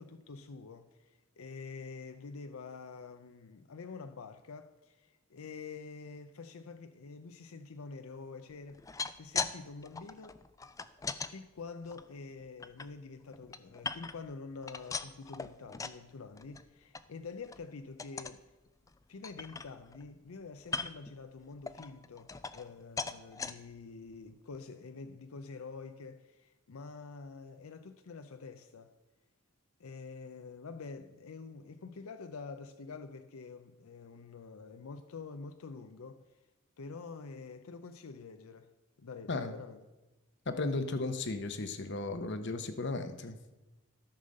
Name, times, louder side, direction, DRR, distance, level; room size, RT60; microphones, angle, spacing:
voice 1, 0.0-10.4 11.3-18.4 19.1-28.9 29.8-36.2 36.8-38.7 39.0-39.8, left 4 dB, 80° left, 0.6 m, -47 dB
sound 1, 8.7-9.6 9.8-11.3 11.9-12.9 13.3-14.3 14.6-16.0 16.4-16.6 16.9-17.0 17.4-17.6 18.0-18.4 18.9-19.0 19.2-20.0 20.6-21.1 21.7-22.7 23.0-23.5 24.1-24.2 24.5-24.6, left 4 dB, 15° left, 0.3 m, -39 dB
voice 2, 40.5-43.4, left 3 dB, 55° left, 0.8 m, -35 dB
13.0 x 5.6 x 6.5 m
head